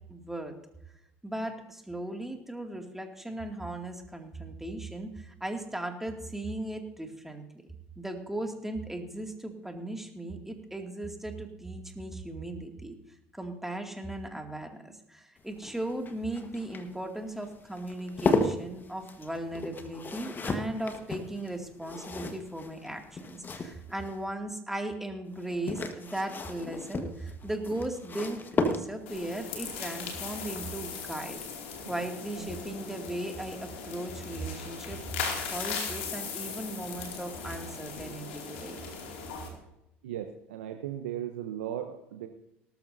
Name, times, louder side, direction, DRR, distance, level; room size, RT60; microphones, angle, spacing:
voice 1, 0.1-0.5 1.2-7.4 8.0-13.0 13.3-31.4 31.9-35.2 35.4-38.8, right 1 dB, 5° right, 3 dB, 2.3 m, -37 dB
sound 1, 15.4-24.2 25.3-29.3 30.9-31.2 31.5-31.6, left 3 dB, 30° left, 1.4 m, -35 dB
sound 2, 29.1-39.5, left 6 dB, 80° left, 2.5 m, -38 dB
voice 2, 40.0-42.3, right 11 dB, 80° right, 6 dB, 0.8 m, -37 dB
18.5 x 13.0 x 2.7 m, 0.87 s
hypercardioid pair, 65°, 6 cm